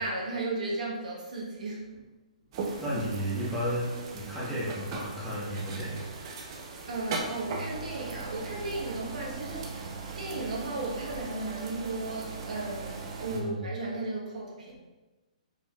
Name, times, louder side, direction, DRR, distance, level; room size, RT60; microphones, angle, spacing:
voice 1, 0.0-1.9 6.9-14.8, right 2 dB, 75° right, -3 dB, 1.2 m, -35 dB
sound 1, 2.5-13.4, right 4 dB, 40° right, 0.6 m, -39 dB
voice 2, 2.8-6.0 13.3-13.6, equal, ahead, -11 dB, 1.2 m, -33 dB
4.8 x 3.5 x 2.4 m, 1.1 s
hypercardioid pair, 150°, 4 cm